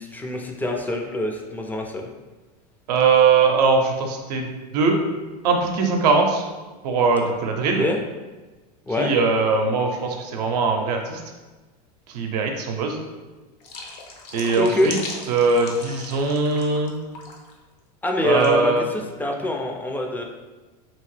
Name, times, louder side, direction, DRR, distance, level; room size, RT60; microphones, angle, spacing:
voice 1, 0.0-2.1 7.7-8.0 8.9-9.1 14.6-14.9 18.0-20.2, left 1 dB, 10° left, 1 dB, 0.4 m, -24 dB
voice 2, 2.9-4.5 4.7-5.0 5.4-6.4 6.8-7.8 9.0-11.2 12.1-13.0 14.3-15.0 15.3-16.9 18.2-18.8, right 4 dB, 80° right, 3 dB, 0.6 m, -21 dB
sound 1, 13.6-16.9 17.1-17.5 18.4-18.5, left 3 dB, 75° left, 0.7 m, -37 dB
2.9 x 2.6 x 3.2 m, 1.2 s
supercardioid pair, 110°, 20 cm